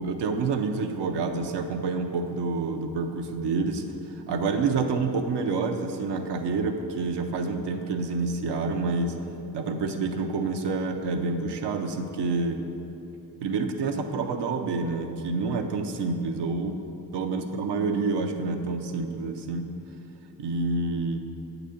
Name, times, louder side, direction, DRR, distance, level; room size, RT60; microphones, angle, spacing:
voice 1, 0.0-9.2 9.5-12.6 13.4-16.8 17.1-19.7 20.4-21.3, right 4 dB, 85° right, 5 dB, 0.7 m, -28 dB
8.3 x 4.0 x 6.9 m, 2.9 s
supercardioid pair, 45°, 40 cm